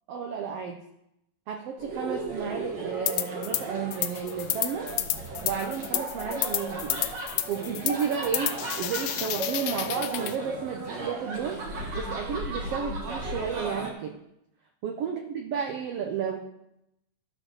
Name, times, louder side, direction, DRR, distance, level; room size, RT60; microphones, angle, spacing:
voice 1, 0.1-0.8 1.5-4.9 5.4-7.1 7.5-11.6 11.9-14.1 14.8-16.4, right 7 dB, 80° right, 4 dB, 1.3 m, -32 dB
sound 1, 1.8-13.9, right 2 dB, 50° right, 1.5 m, -35 dB
sound 2, 3.1-3.6 3.9-10.4, left 14 dB, 80° left, 2.0 m, -30 dB
13.5 x 4.5 x 6.3 m, 0.82 s
omnidirectional pair, 3.7 m